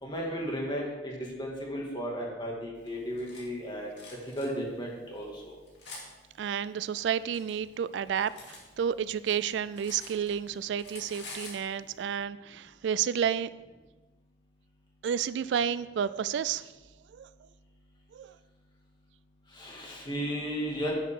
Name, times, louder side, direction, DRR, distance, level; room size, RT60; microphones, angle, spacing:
voice 1, 0.0-3.9 4.4-5.6 19.5-20.9, equal, 25° left, -2 dB, 2.1 m, -34 dB
Cutlery silverware, 2.9-3.4 4.0-4.5 5.2-6.1 6.9-8.6 9.0-10.5 10.8-11.6, left 3 dB, 90° left, 2.2 m, -47 dB
voice 2, 6.4-13.5 15.0-16.7 17.1-17.3 18.1-18.3, right 8 dB, 85° right, 16 dB, 0.3 m, -31 dB
10.0 x 7.3 x 3.7 m, 1.2 s
head